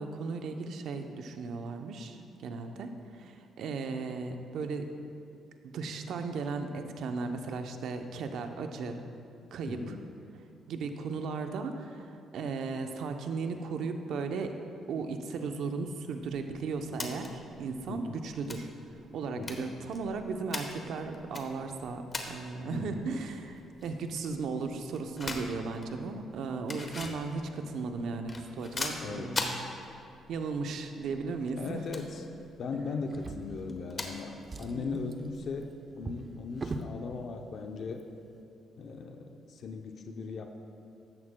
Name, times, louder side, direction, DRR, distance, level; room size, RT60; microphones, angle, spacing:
voice 1, 0.0-4.9 5.7-9.0 9.5-9.9 10.7-14.6 14.9-18.7 19.1-22.0 22.3-29.6 30.3-31.8 34.7-35.0, right 4 dB, 75° right, 6 dB, 0.7 m, -36 dB
voice 2, 9.7-10.0 17.9-18.3 19.4-19.7 22.7-23.1 29.0-29.5 31.5-32.3 32.6-38.1 38.8-40.5, left 4 dB, 60° left, 4 dB, 0.6 m, -38 dB
sound 1, 16.2-35.7, left 3 dB, 35° left, 1.1 m, -43 dB
Drawer open or close, 33.1-34.1 34.4-37.0 37.9-38.0 38.4-38.5, right 3 dB, 35° right, 0.6 m, -42 dB
13.5 x 10.5 x 2.2 m, 2.6 s
cardioid pair, 90°, 0 cm